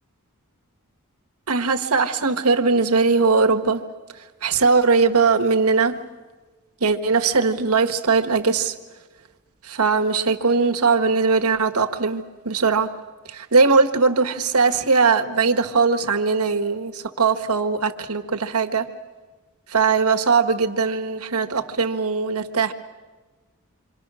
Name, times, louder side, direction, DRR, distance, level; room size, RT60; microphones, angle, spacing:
voice 1, 1.5-3.8 4.1-6.0 6.8-8.7 9.6-12.9 13.2-18.9 19.7-22.7, right 4 dB, 85° right, 1.5 m, -20 dB
27.5 x 24.5 x 6.3 m
head